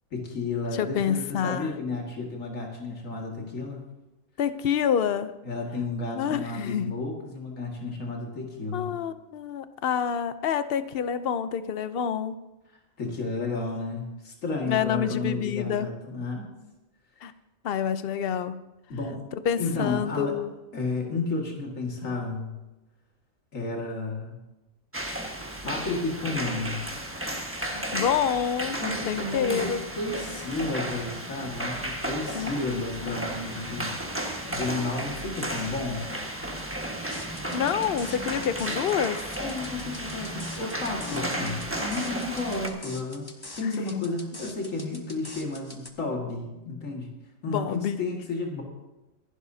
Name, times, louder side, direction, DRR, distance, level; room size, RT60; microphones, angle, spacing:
voice 1, 0.1-3.8 5.4-8.9 13.0-16.5 18.9-19.3 19.6-20.4 20.7-22.5 23.5-24.4 25.6-26.8 28.7-33.9 34.5-36.1 39.4-43.3 43.6-47.1 47.4-48.6, left 3 dB, 75° left, -1 dB, 2.4 m, -32 dB
voice 2, 0.8-1.7 4.4-5.3 6.2-6.9 8.7-12.3 14.7-15.9 17.2-17.3 17.6-18.6 19.4-20.5 27.6-28.8 29.1-29.8 32.3-32.5 33.0-33.1 37.5-39.2 41.0-41.6 43.6-44.0 47.5-48.0, left 8 dB, 55° left, 11 dB, 0.8 m, -28 dB
sound 1, 24.9-42.7, right 1 dB, 10° right, 1.3 m, -34 dB
sound 2, 37.1-45.9, left 2 dB, 20° left, 1.1 m, -45 dB
26.5 x 11.0 x 2.8 m, 1.0 s
omnidirectional pair, 1.4 m